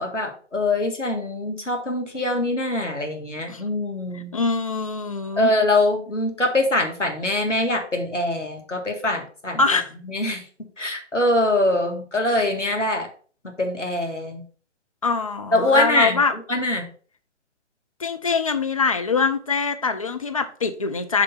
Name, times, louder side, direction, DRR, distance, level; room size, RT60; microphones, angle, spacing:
voice 1, 0.0-4.3 5.4-9.6 10.1-10.4 10.8-13.1 13.6-14.4 15.5-16.2 16.5-16.9, left 1 dB, 90° left, 1.7 m, -23 dB
voice 2, 4.1-5.5 9.6-9.9 15.0-16.3 18.0-21.2, left 4 dB, 30° left, 0.5 m, -23 dB
6.7 x 3.3 x 5.5 m
figure-of-eight pair, 135°, 36 cm